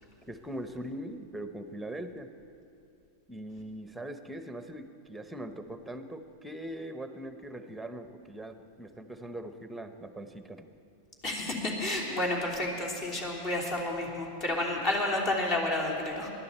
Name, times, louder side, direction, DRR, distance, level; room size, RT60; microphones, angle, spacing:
voice 1, 0.3-2.3 3.3-10.7, right 1 dB, 5° right, 8 dB, 0.9 m, -41 dB
voice 2, 11.2-16.3, left 1 dB, 40° left, -2 dB, 3.3 m, -30 dB
20.0 x 12.0 x 4.4 m, 2.7 s
hypercardioid pair, 120°, 0 cm